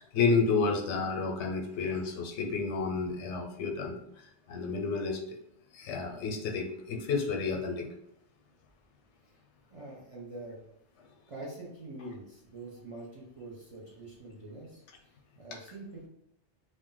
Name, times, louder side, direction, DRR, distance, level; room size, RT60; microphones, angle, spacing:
voice 1, 0.0-3.9 4.5-5.2 5.7-7.9, left 4 dB, 85° left, 3 dB, 0.9 m, -30 dB
voice 2, 9.7-10.6 11.3-16.1, right 2 dB, 35° right, -5 dB, 0.6 m, -45 dB
2.5 x 2.1 x 3.7 m, 0.76 s
omnidirectional pair, 1.1 m